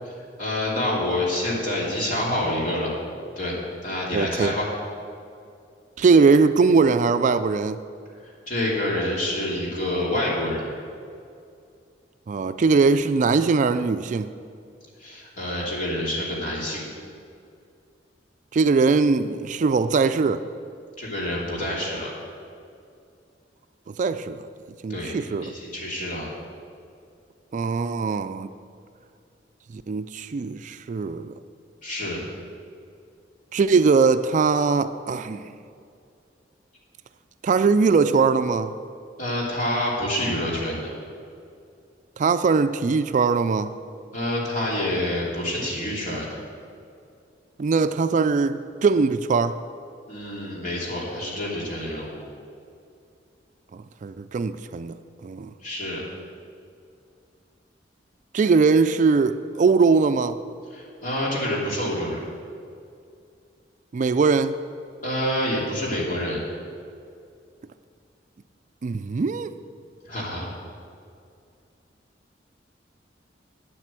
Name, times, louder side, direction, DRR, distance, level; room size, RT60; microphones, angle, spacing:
voice 1, 0.4-2.9 3.4-3.6 3.8-4.7 8.2-10.7 15.0-16.9 21.0-22.1 24.9-25.1 25.4-26.3 31.8-32.2 39.2-40.9 44.1-46.4 50.1-52.3 55.6-56.0 60.7-62.2 65.0-66.4 70.0-70.5, left 1 dB, 50° left, -4 dB, 2.8 m, -27 dB
voice 2, 4.1-4.5 6.0-7.8 12.3-14.3 18.5-20.4 24.0-24.5 24.8-25.5 27.5-28.5 29.7-31.3 33.5-35.4 37.4-38.7 42.2-43.7 47.6-49.6 53.7-55.0 55.2-55.5 58.3-60.4 63.9-64.5 68.8-69.5, right 4 dB, 45° right, 11 dB, 0.3 m, -21 dB
9.1 x 7.7 x 7.4 m, 2.4 s
head